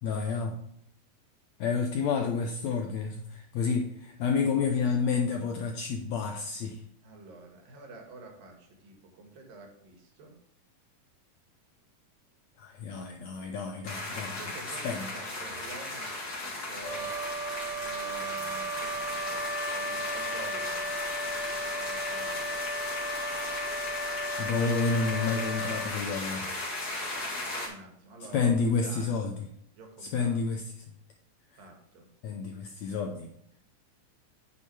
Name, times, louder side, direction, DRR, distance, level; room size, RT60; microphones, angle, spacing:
voice 1, 0.0-0.6 1.6-6.8 12.6-14.6 14.8-15.1 24.4-26.5 28.3-29.4 30.0-30.6 31.5-31.6 32.2-33.3, left 5 dB, 80° left, 3 dB, 1.6 m, -30 dB
voice 2, 7.0-10.4 14.2-16.1 16.4-17.2 17.7-19.4 19.7-20.9 21.2-22.6 27.4-28.5 28.8-29.3 29.8-30.4 31.6-32.1, right 2 dB, 85° right, 2 dB, 3.4 m, -49 dB
sound 1, 13.8-27.7, left 2 dB, 35° left, 1.9 m, -36 dB
Wind instrument woodwind instrument, 16.8-25.9, equal, 20° left, 1.2 m, -35 dB
8.5 x 7.0 x 3.3 m, 0.71 s
omnidirectional pair, 3.9 m